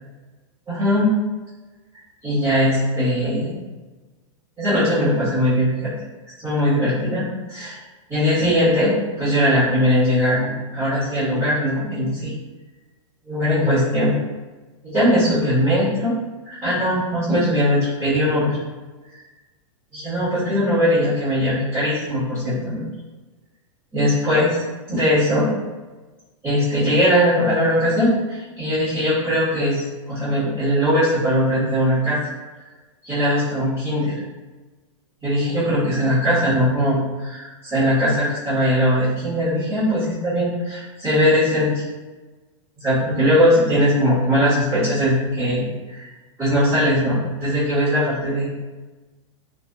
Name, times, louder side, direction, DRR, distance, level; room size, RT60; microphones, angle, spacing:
voice 1, 0.7-1.1 2.2-3.6 4.6-5.9 6.4-7.8 8.1-12.3 13.2-14.1 14.8-16.1 16.4-18.6 19.9-22.9 23.9-24.5 24.9-25.5 26.4-32.2 33.0-34.1 35.2-41.8 42.8-46.1 46.4-48.5, equal, 10° right, -17 dB, 1.4 m, -20 dB
3.2 x 2.5 x 2.3 m, 1.2 s
supercardioid pair, 155°, 17 cm